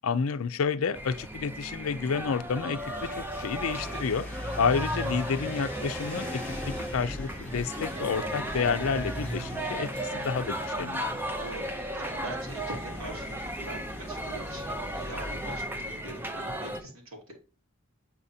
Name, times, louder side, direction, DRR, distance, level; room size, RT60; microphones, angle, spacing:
voice 1, 0.0-4.2 4.6-11.1, left 5 dB, 80° left, 0.5 m, -30 dB
sound 1, 0.9-16.8, right 1 dB, 10° right, 0.5 m, -36 dB
sound 2, 2.8-15.6, equal, 5° left, 1.0 m, -39 dB
voice 2, 11.4-11.7 12.0-17.3, right 1 dB, 75° right, 2.7 m, -42 dB
8.6 x 4.2 x 2.7 m
head